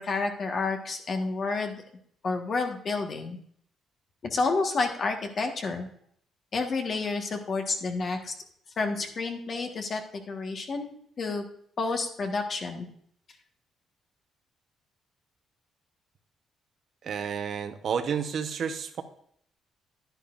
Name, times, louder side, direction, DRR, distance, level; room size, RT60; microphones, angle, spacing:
voice 1, 0.0-1.8 2.2-3.4 4.2-5.9 6.5-8.3 8.8-10.0 10.3-11.4 11.8-12.9, left 3 dB, 50° left, 4 dB, 1.5 m, -30 dB
voice 2, 17.0-19.0, right 7 dB, 60° right, 8 dB, 1.0 m, -31 dB
10.5 x 10.5 x 2.6 m, 0.65 s
cardioid pair, 90°, 0 cm